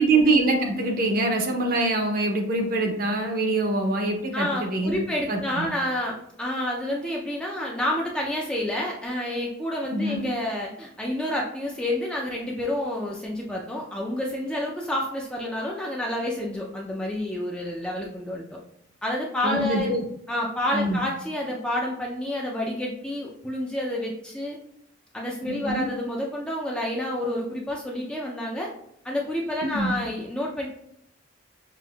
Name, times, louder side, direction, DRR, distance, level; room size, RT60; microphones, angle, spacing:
voice 1, 0.0-4.9 5.3-5.7 9.9-10.3 19.4-20.0 20.7-21.0 25.4-25.9 29.6-29.9, right 2 dB, 45° right, 3 dB, 0.6 m, -24 dB
voice 2, 4.3-18.6 19.0-19.9 20.3-24.6 25.1-28.7 29.0-30.7, left 1 dB, 5° left, -2 dB, 0.4 m, -29 dB
5.9 x 2.5 x 2.3 m, 0.74 s
head